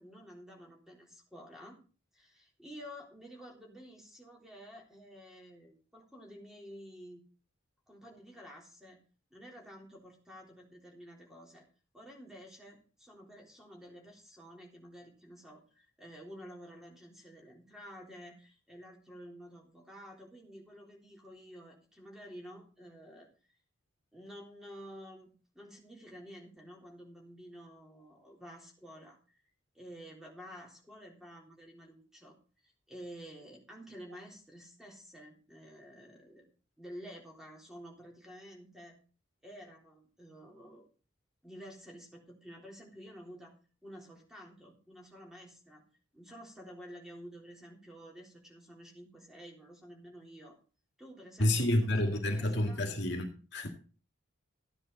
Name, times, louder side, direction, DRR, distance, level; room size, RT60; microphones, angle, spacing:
voice 1, 0.0-1.8 2.1-7.2 7.9-9.0 9.3-11.7 11.9-23.3 24.1-29.4 29.7-32.4 32.6-36.5 36.8-39.0 39.4-40.9 41.4-43.5 43.8-45.8 46.1-50.6 51.0-52.8, equal, ahead, 3.7 m, -51 dB
voice 2, 51.4-53.7, left 1 dB, 55° left, 2.3 m, -29 dB
14.5 x 9.8 x 4.1 m
head